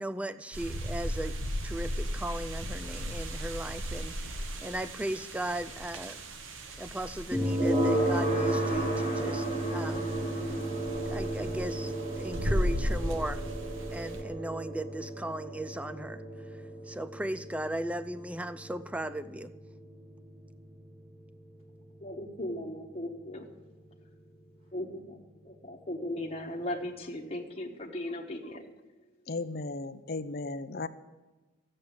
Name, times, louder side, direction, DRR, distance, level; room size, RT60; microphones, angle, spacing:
voice 1, 0.0-1.3 1.6-6.2 6.8-10.1 11.0-13.4 13.9-16.2 16.5-19.5, right 1 dB, 5° right, 13 dB, 0.4 m, -37 dB
sound 1, 0.5-14.2, equal, 85° right, 1.3 m, -36 dB
sound 2, 7.3-22.2, right 1 dB, 25° right, 2.4 m, -33 dB
voice 2, 22.0-23.5 23.9-24.2 24.7-25.2 25.4-29.1, left 1 dB, 30° left, 1 dB, 1.3 m, -38 dB
voice 3, 29.3-30.9, left 3 dB, 50° left, 11 dB, 0.6 m, -35 dB
13.5 x 7.7 x 8.7 m, 1.2 s
head